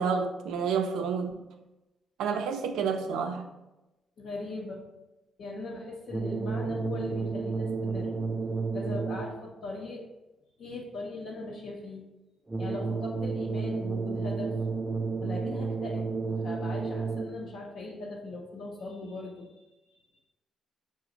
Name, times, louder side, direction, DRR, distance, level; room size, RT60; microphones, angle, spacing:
voice 1, 0.0-1.4 2.2-3.5, right 6 dB, 85° right, 0.4 m, -29 dB
voice 2, 4.2-4.8 5.4-8.2 8.7-10.1 10.6-12.0 12.6-14.5 15.2-16.0 16.4-20.0, left 2 dB, 65° left, 0.6 m, -39 dB
sound 1, 6.1-9.5 12.5-17.5, right 4 dB, 20° right, 0.3 m, -31 dB
4.9 x 2.1 x 3.8 m
cardioid pair, 90°, 0 cm